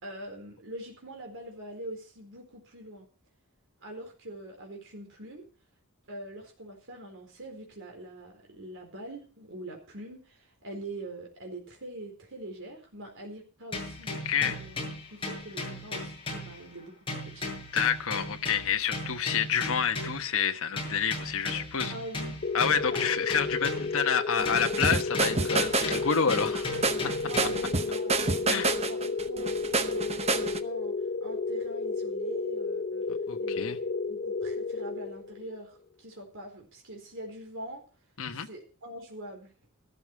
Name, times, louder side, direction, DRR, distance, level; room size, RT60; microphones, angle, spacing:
voice 1, 0.0-3.1 3.8-5.4 6.1-17.5 21.9-22.3 22.9-23.0 27.3-30.9 31.2-33.0 33.4-37.8 38.5-39.5, right 1 dB, 60° right, 4.2 m, -43 dB
sound 1, 13.7-16.8 17.1-20.3 20.8-24.1 24.4-27.8, left 2 dB, 25° left, 7.9 m, -37 dB
voice 2, 14.2-14.6 17.7-21.9 22.5-26.8 28.5-28.7 33.1-33.8 38.2-38.5, left 7 dB, 65° left, 1.2 m, -28 dB
sound 2, 22.4-35.6, left 4 dB, 40° left, 0.7 m, -32 dB
sound 3, 24.4-30.6, right 3 dB, 30° right, 0.9 m, -29 dB
14.0 x 13.0 x 4.7 m
head